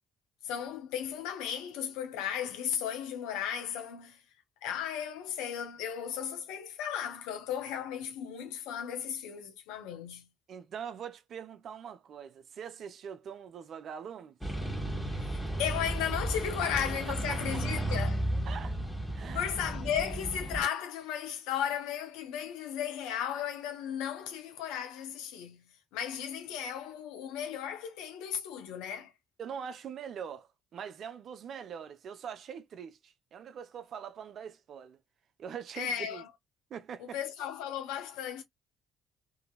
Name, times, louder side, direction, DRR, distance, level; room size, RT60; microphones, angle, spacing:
voice 1, 0.4-4.2 4.6-10.3 15.1-18.3 19.3-29.1 35.8-36.3 37.0-38.4, left 9 dB, 75° left, 0.7 m, -35 dB
voice 2, 10.5-14.4 16.6-16.7 17.1-17.4 18.5-18.8 19.1-19.5 29.4-35.0 35.4-36.2 36.7-37.2, right 7 dB, 55° right, 0.5 m, -43 dB
sound 1, 14.4-20.6, right 1 dB, ahead, 1.4 m, -34 dB
2.8 x 2.7 x 2.3 m
hypercardioid pair, 50°, 0 cm